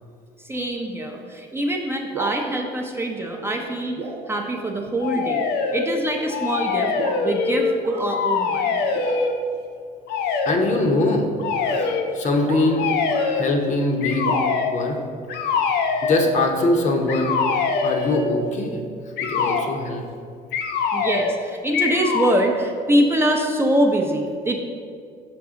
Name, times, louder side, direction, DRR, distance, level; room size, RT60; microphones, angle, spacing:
voice 1, 0.4-4.0 4.3-5.5 5.7-6.9 7.2-8.8 20.9-24.6, right 1 dB, 15° right, 2 dB, 0.5 m, -23 dB
sound 1, 2.0-2.4 3.4-3.6 4.0-4.3 4.6-4.7 5.1-5.4 6.1-6.2 7.0-7.3 7.8-8.1 8.9-9.5 10.8-13.4 14.2-14.4, right 4 dB, 90° right, 0.8 m, -34 dB
sound 2, 5.0-5.9 6.3-7.8 8.1-9.4 10.1-10.6 11.4-12.1 12.8-13.5 14.0-14.8 15.3-16.3 17.1-18.3 19.2-19.7 20.5-21.4 21.7-22.4, left 5 dB, 80° left, 0.5 m, -23 dB
voice 2, 10.5-13.0 13.3-15.0 16.0-17.4 17.8-18.8 19.2-20.0, left 2 dB, 45° left, 3 dB, 0.7 m, -22 dB
6.0 x 4.7 x 3.7 m, 2.3 s
cardioid pair, 110°, 17 cm